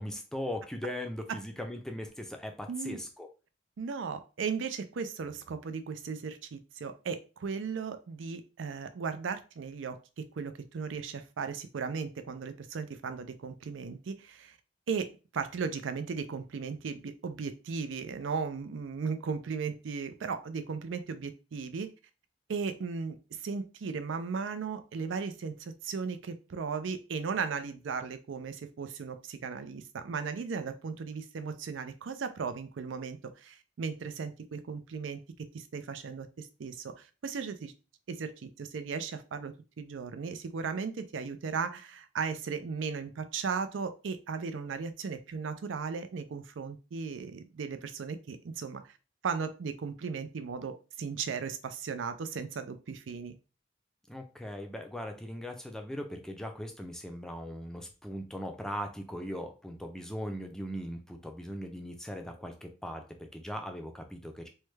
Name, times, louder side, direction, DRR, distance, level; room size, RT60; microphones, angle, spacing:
voice 1, 0.0-3.3 54.1-64.5, equal, 5° left, 4 dB, 0.4 m, -39 dB
voice 2, 2.7-3.0 3.8-10.0 10.3-14.6 14.9-21.9 22.5-35.2 35.5-37.7 38.1-48.9 49.2-53.4, right 5 dB, 85° right, 10 dB, 0.4 m, -36 dB
3.2 x 2.2 x 3.1 m, 0.32 s
head